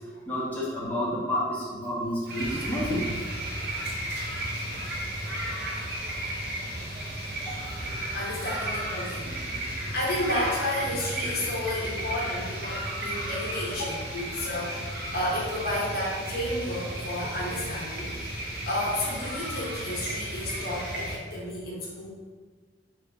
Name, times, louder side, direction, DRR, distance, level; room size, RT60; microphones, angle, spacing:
voice 1, 0.2-3.1 7.4-7.9 9.3-9.4 14.5-14.6, left 1 dB, 10° left, -9 dB, 1.0 m, -30 dB
sound 1, 2.3-21.2, right 1 dB, 60° right, 0.7 m, -34 dB
voice 2, 8.1-9.3 9.6-14.8 15.1-18.4 18.7-22.1, left 1 dB, 55° left, -4 dB, 0.7 m, -32 dB
4.7 x 2.9 x 2.3 m, 1.5 s
head